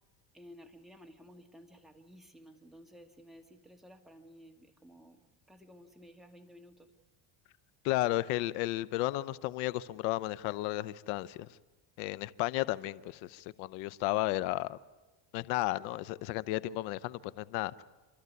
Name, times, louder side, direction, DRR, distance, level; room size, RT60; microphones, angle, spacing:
voice 1, 0.3-5.2 5.5-6.9, equal, ahead, 2.2 m, -55 dB
voice 2, 7.8-11.5 12.0-14.8 15.3-17.8, left 17 dB, 90° left, 0.8 m, -33 dB
28.0 x 13.5 x 9.6 m
supercardioid pair, 105°, 50 cm